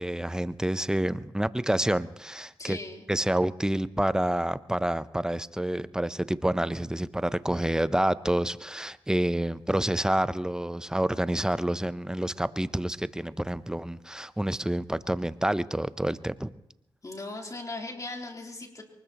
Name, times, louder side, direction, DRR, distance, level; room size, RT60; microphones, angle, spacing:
voice 1, 0.0-2.8 3.1-16.5, right 1 dB, 5° right, 15 dB, 0.7 m, -28 dB
voice 2, 2.6-3.1 17.0-18.8, left 2 dB, 40° left, 1 dB, 3.5 m, -38 dB
23.5 x 20.0 x 3.0 m, 0.87 s
cardioid pair, 50°, 9 cm